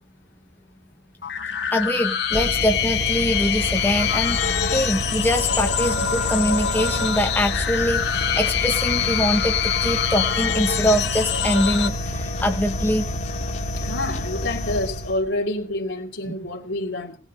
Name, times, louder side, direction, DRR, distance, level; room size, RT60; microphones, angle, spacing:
sound 1, 1.2-11.9, left 8 dB, 65° left, 1.9 m, -25 dB
voice 1, 1.7-13.1 16.3-16.4, equal, 10° left, 1.1 m, -24 dB
sound 2, 2.3-15.3, left 1 dB, 40° left, 2.3 m, -28 dB
voice 2, 13.8-17.2, left 1 dB, 80° left, 2.8 m, -28 dB
19.0 x 10.5 x 5.6 m
head